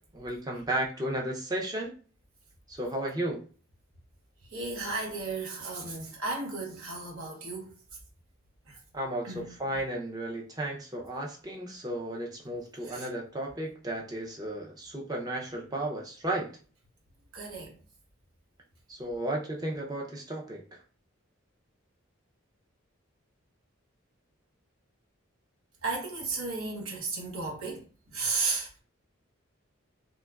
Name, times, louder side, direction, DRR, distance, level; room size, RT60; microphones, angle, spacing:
voice 1, 0.1-1.9 2.7-3.4 8.9-16.5 18.9-20.6, right 1 dB, 20° right, 0.4 m, -34 dB
voice 2, 4.5-7.7 8.7-8.8 9.2-9.5 12.8-13.1 17.3-17.7 25.8-27.8 28.1-28.7, right 3 dB, 80° right, 0.8 m, -34 dB
2.9 x 2.3 x 2.2 m
head